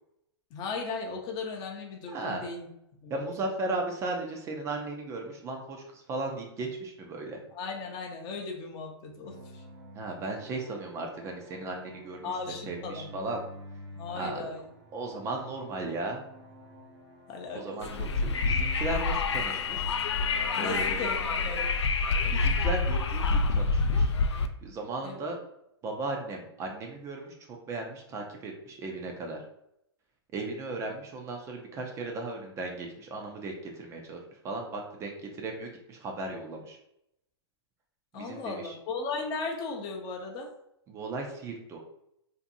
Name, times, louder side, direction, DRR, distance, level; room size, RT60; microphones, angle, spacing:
voice 1, 0.5-2.7 3.0-3.3 7.5-9.6 12.2-13.1 14.0-14.7 17.3-18.1 20.6-21.7 25.0-25.2 38.1-40.5, left 4 dB, 30° left, 2 dB, 0.6 m, -37 dB
voice 2, 2.1-2.4 3.1-7.4 9.9-12.3 12.7-13.4 14.2-14.5 14.9-16.2 17.5-19.9 20.5-21.1 22.2-24.1 24.6-25.4 25.8-29.4 30.3-36.8 38.2-38.8 40.9-41.8, right 2 dB, 20° right, 2 dB, 0.4 m, -36 dB
sound 1, 9.2-21.5, equal, 80° right, 1.2 m, -48 dB
Wind, 17.8-24.5, left 4 dB, 80° left, 0.4 m, -27 dB
2.6 x 2.5 x 2.5 m, 0.78 s
hypercardioid pair, 125°, 14 cm